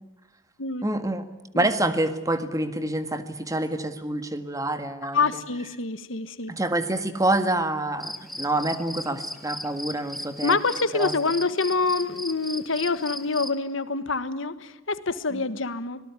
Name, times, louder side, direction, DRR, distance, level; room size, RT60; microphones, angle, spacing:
voice 1, 0.8-1.3 1.5-5.2 6.5-10.6 10.9-11.1 15.3-15.5, right 1 dB, 15° right, 10 dB, 1.7 m, -27 dB
voice 2, 5.1-6.5 10.4-16.0, left 4 dB, 75° left, 14 dB, 1.4 m, -26 dB
sound 1, 8.0-13.5, equal, ahead, 1.2 m, -37 dB
25.0 x 18.5 x 9.7 m, 1.0 s
head